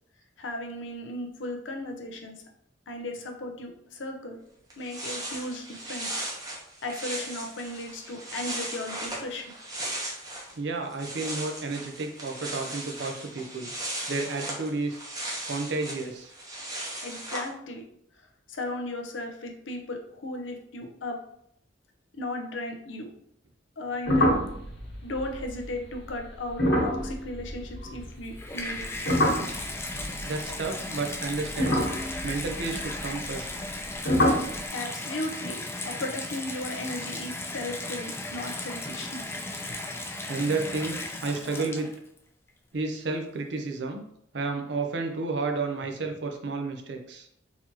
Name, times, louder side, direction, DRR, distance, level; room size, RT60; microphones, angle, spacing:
voice 1, 0.4-2.4 2.9-4.4 4.8-6.1 6.8-9.4 17.0-17.8 18.5-21.2 22.1-23.1 23.8-24.3 25.0-28.9 34.7-39.4, left 1 dB, 85° left, 3 dB, 0.7 m, -36 dB
sound 1, 4.4-4.5 4.7-10.5 10.8-17.5, right 1 dB, 20° right, 0.9 m, -37 dB
voice 2, 10.6-13.7 14.1-15.0 15.5-16.3 29.9-31.8 32.2-33.5 39.3-39.5 40.3-41.9 42.7-44.0 44.3-47.3, right 3 dB, 65° right, 3 dB, 0.6 m, -31 dB
sound 2, 24.1-28.4 28.7-30.9 31.5-33.8 34.0-34.6, equal, 70° left, 1.4 m, -27 dB
Water tap faucet / Bathtub (filling or washing), 28.1-42.2 43.0-43.1, left 2 dB, 15° left, 0.3 m, -36 dB
4.0 x 3.0 x 2.8 m, 0.71 s
head